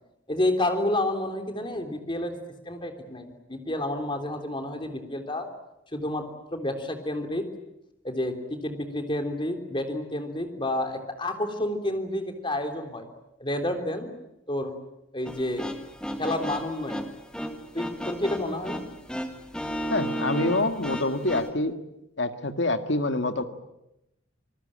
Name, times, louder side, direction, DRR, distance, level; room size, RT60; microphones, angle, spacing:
voice 1, 0.3-2.3 2.7-5.5 5.9-6.2 6.5-7.5 8.0-13.1 13.4-14.1 14.5-14.8 15.1-15.7 16.2-17.1 17.7-18.8, left 1 dB, 25° left, 5 dB, 3.5 m, -29 dB
sound 1, 15.3-21.5, equal, 5° left, 1.8 m, -34 dB
voice 2, 19.9-21.7 22.2-23.4, left 2 dB, 65° left, 7 dB, 2.0 m, -26 dB
27.0 x 20.5 x 8.9 m, 0.86 s
head